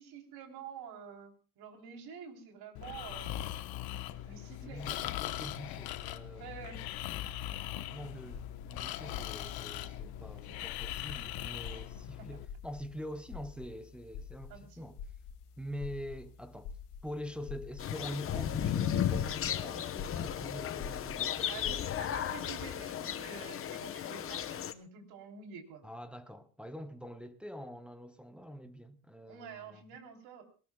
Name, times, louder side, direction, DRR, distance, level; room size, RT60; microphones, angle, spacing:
voice 1, 0.0-3.5 4.2-5.0 6.3-6.8 11.7-11.8 12.2-12.3 14.5-14.8 21.5-21.7 22.0-25.8 29.3-30.4, right 7 dB, 70° right, 3.4 m, -48 dB
Breathing, 2.8-12.5, left 13 dB, 70° left, 1.1 m, -40 dB
voice 2, 4.6-6.5 7.9-15.0 15.6-16.7 17.0-21.9 25.8-29.8, equal, 5° right, 0.7 m, -45 dB
sound 1, 7.9-21.9, left 6 dB, 90° left, 2.3 m, -48 dB
sound 2, 17.8-24.7, left 10 dB, 35° left, 0.9 m, -35 dB
22.5 x 19.0 x 2.3 m
cardioid pair, 170°, 38 cm